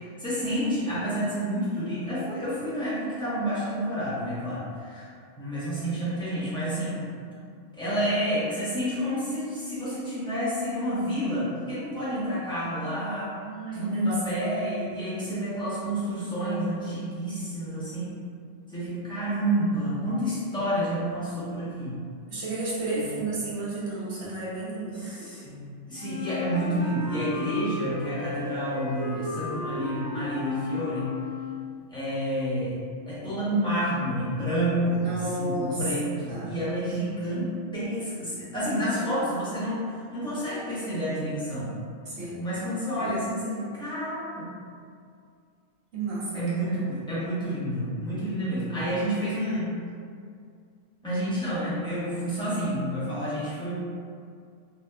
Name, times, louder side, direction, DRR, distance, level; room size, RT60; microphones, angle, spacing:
voice 1, 0.2-5.1 5.4-7.0 7.7-13.3 13.7-18.1 18.7-21.9 23.0-23.2 24.9-25.6 25.9-31.1 31.9-32.7 33.1-41.7 42.4-44.5 46.3-49.7 51.0-53.7, equal, 5° left, -11 dB, 0.5 m, -29 dB
voice 2, 13.4-15.0 22.3-25.3 34.8-35.8 36.3-36.6 38.9-39.1 42.1-42.4 43.0-43.1 45.9-46.4 46.7-46.8, right 2 dB, 65° right, -8 dB, 1.1 m, -33 dB
Wind instrument woodwind instrument, 26.0-31.8, left 2 dB, 85° left, 1.0 m, -34 dB
2.7 x 2.4 x 2.3 m, 2.3 s
omnidirectional pair, 1.3 m